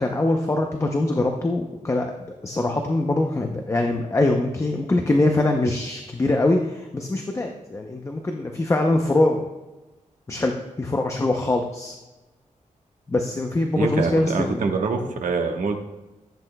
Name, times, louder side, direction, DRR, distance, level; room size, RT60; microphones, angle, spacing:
voice 1, 0.0-2.1 2.4-9.5 10.3-11.9 13.1-14.7, left 2 dB, 20° left, 3 dB, 0.6 m, -23 dB
voice 2, 13.8-15.7, right 4 dB, 80° right, 3 dB, 1.2 m, -25 dB
15.0 x 8.5 x 2.2 m, 1.1 s
wide cardioid pair, 170°, 13 cm